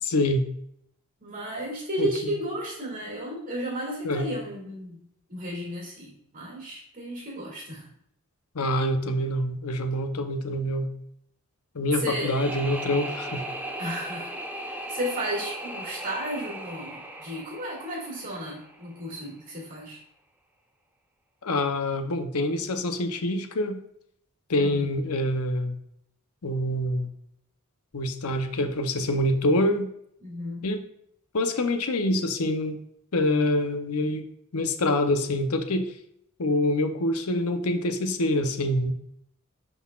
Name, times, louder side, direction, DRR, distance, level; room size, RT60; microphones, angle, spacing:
voice 1, 0.1-0.4 2.0-2.1 4.0-4.3 8.5-10.9 11.7-13.4 21.4-23.8 24.5-25.8 26.4-27.1 27.9-29.9 30.6-30.8 31.3-32.8 33.1-34.3 34.5-35.9 36.4-38.9, left 1 dB, 75° left, 6 dB, 0.8 m, -26 dB
voice 2, 1.2-5.0 5.3-7.9 12.0-12.4 13.8-20.0 24.6-24.9 30.2-30.7, right 1 dB, 40° right, -3 dB, 2.3 m, -34 dB
sound 1, 12.1-19.1, right 1 dB, 10° right, 0.7 m, -37 dB
11.0 x 4.1 x 2.4 m, 0.72 s
head